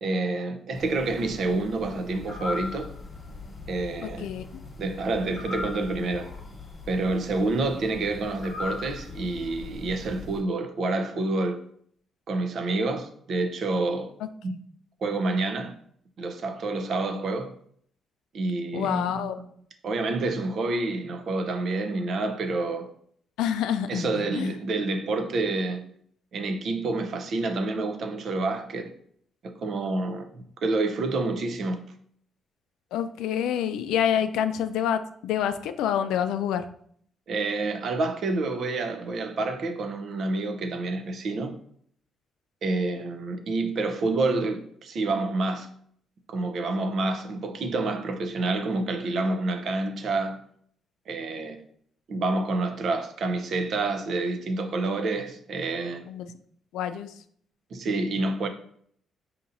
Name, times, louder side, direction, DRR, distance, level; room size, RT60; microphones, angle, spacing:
voice 1, 0.0-2.9 3.7-4.3 4.8-6.3 6.9-11.6 12.3-14.1 14.4-14.5 15.0-15.7 16.2-17.5 18.3-19.3 19.8-22.9 23.9-25.8 26.3-28.9 29.6-31.8 37.3-41.5 42.6-45.7 46.3-50.4 51.1-51.6 52.1-56.0 57.7-58.5, right 2 dB, 60° right, 0.6 m, -28 dB
sound 1, 0.7-10.4, left 3 dB, 30° left, 1.2 m, -39 dB
voice 2, 4.0-4.6 14.2-14.3 18.7-19.4 23.4-24.5 32.9-36.7 56.1-56.3 56.7-57.2, left 9 dB, 90° left, 0.3 m, -27 dB
5.3 x 2.8 x 2.6 m
cardioid pair, 90°, 0 cm